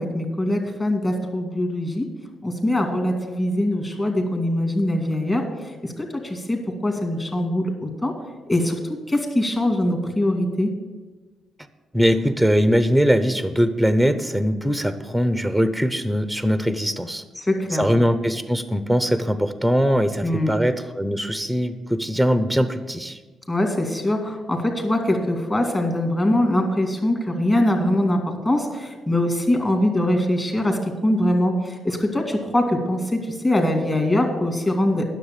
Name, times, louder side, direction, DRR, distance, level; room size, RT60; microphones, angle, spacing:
voice 1, 0.0-2.1 2.4-5.4 5.8-8.1 8.5-8.8 9.1-10.7 17.4-18.0 20.2-20.5 23.5-28.2 28.4-35.0, left 1 dB, 25° left, 3 dB, 2.3 m, -22 dB
voice 2, 11.9-17.2 17.7-23.2, equal, ahead, 11 dB, 0.7 m, -21 dB
10.0 x 7.0 x 7.4 m, 1.3 s
cardioid pair, 80°, 0 cm